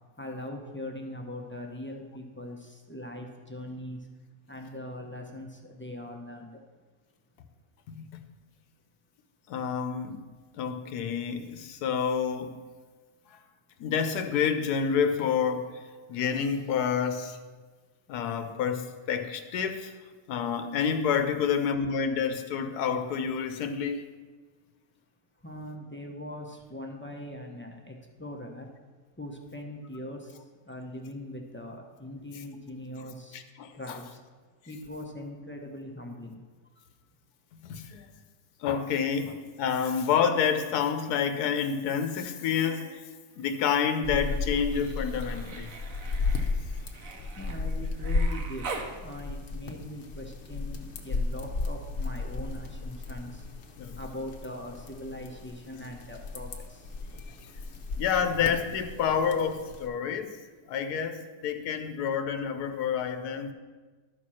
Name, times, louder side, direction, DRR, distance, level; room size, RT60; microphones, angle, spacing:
voice 1, 0.2-4.0 4.5-6.5 25.4-28.7 29.2-30.3 30.7-33.4 33.7-34.2 34.7-36.4 47.4-53.4 54.0-56.9, left 1 dB, 15° left, 1 dB, 0.5 m, -41 dB
voice 2, 7.9-8.2 9.5-10.2 10.5-12.7 13.3-13.4 13.8-17.4 18.1-20.0 20.3-24.0 33.3-34.0 37.6-38.1 38.6-43.0 43.4-45.7 47.1-47.3 53.8-54.0 57.4-57.5 58.0-60.4 60.7-63.5, left 7 dB, 90° left, 7 dB, 1.2 m, -29 dB
Human voice, 42.2-43.0 43.3-48.9 50.5-50.6, right 4 dB, 65° right, 1.3 m, -44 dB
sound 1, 44.0-59.9, left 3 dB, 55° left, 1.1 m, -34 dB
12.0 x 4.3 x 6.2 m, 1.4 s
omnidirectional pair, 1.6 m